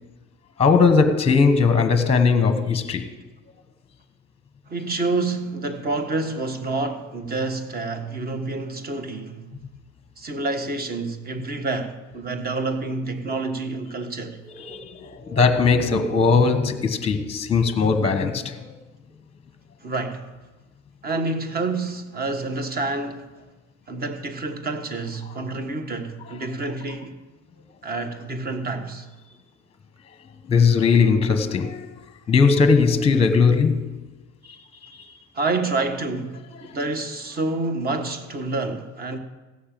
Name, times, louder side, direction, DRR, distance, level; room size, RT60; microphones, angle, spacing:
voice 1, 0.6-3.1 14.5-18.7 30.5-31.9 32.3-33.9 34.5-34.9, left 5 dB, 20° left, 1.1 m, -19 dB
voice 2, 4.7-9.5 10.2-14.4 19.8-20.3 21.0-23.3 23.9-27.2 27.8-29.1 35.3-39.2, right 3 dB, 30° right, 1.5 m, -28 dB
16.5 x 6.6 x 7.6 m
supercardioid pair, 105°, 33 cm